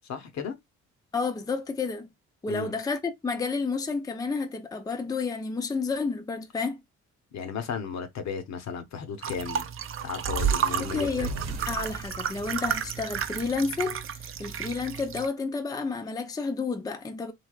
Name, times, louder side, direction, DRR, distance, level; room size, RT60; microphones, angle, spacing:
voice 1, 0.1-0.6 2.5-2.7 7.3-9.7 10.0-11.3, left 6 dB, 65° left, 0.9 m, -34 dB
voice 2, 1.1-2.1 2.4-6.8 10.8-11.3 11.7-17.3, left 4 dB, 15° left, 0.5 m, -30 dB
sound 1, 9.2-15.3, right 8 dB, 45° right, 0.5 m, -33 dB
sound 2, 10.2-14.6, right 6 dB, 60° right, 0.9 m, -34 dB
3.2 x 2.8 x 2.3 m
cardioid pair, 90°, 30 cm